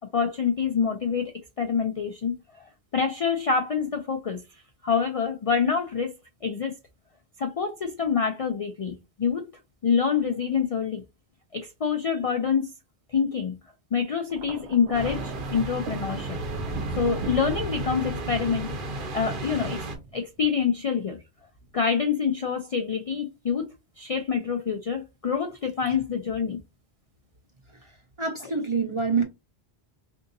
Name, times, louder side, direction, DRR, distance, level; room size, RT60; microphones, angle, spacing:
voice 1, 0.1-1.3 1.6-4.4 4.8-6.1 6.4-6.7 7.4-9.4 9.8-11.0 11.5-12.7 13.1-13.6 13.9-16.4 17.0-19.8 20.1-21.2 21.7-23.6 24.0-26.6, left 6 dB, 55° left, 0.4 m, -26 dB
Thunder, 14.3-20.7 21.6-21.9, right 3 dB, 85° right, 0.8 m, -38 dB
sound 1, 14.9-20.0, right 2 dB, 55° right, 0.9 m, -34 dB
voice 2, 28.2-29.2, right 5 dB, 40° right, 0.5 m, -25 dB
3.6 x 2.7 x 2.6 m
omnidirectional pair, 1.1 m